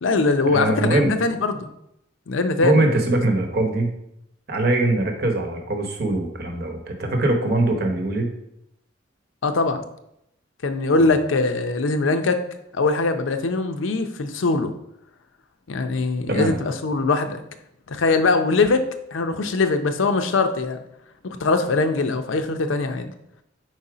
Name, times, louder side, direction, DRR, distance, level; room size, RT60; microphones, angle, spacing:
voice 1, 0.0-1.7 2.3-3.0 9.4-9.9 10.6-12.4 12.7-14.7 15.7-17.4 17.9-18.9 19.1-20.8 21.2-23.1, left 3 dB, 90° left, 8 dB, 0.6 m, -22 dB
voice 2, 0.5-1.1 2.6-3.9 4.5-8.3 11.0-11.1 16.3-16.5, right 2 dB, 55° right, 3 dB, 0.9 m, -22 dB
4.6 x 4.1 x 4.9 m, 0.80 s
head